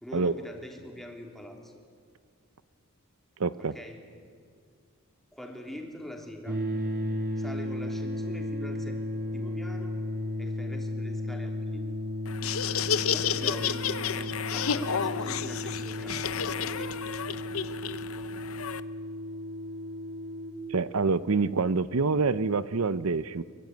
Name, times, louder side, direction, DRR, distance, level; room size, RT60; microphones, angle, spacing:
voice 1, 0.0-1.7 3.6-4.0 5.3-6.6 7.4-9.0 9.3-10.0 10.4-11.9 13.1-16.3 16.6-16.9, left 1 dB, ahead, 0 dB, 3.5 m, -43 dB
voice 2, 3.4-3.7 20.7-23.4, right 4 dB, 90° right, 15 dB, 0.7 m, -26 dB
sound 1, 6.5-20.5, left 1 dB, 45° right, 3.4 m, -34 dB
Laughter, 12.3-18.8, left 7 dB, 80° left, 0.9 m, -31 dB
24.5 x 24.0 x 9.6 m, 2.1 s
head